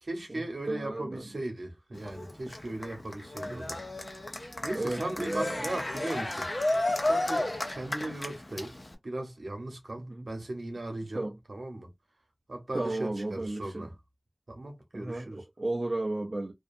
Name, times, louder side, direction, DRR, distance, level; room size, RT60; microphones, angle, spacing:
voice 1, 0.0-3.8 4.6-6.5 7.0-8.8 9.0-11.2 11.5-11.9 12.5-13.9 14.5-15.4, right 1 dB, 80° right, 0.9 m, -37 dB
voice 2, 0.7-1.3 3.4-3.7 4.7-5.6 10.0-10.3 11.1-11.4 12.7-13.9 14.9-16.5, right 2 dB, 55° right, 0.4 m, -34 dB
Cheering, 1.9-8.9, left 1 dB, 50° left, 0.7 m, -32 dB
2.5 x 2.2 x 2.5 m
wide cardioid pair, 45°, 0 cm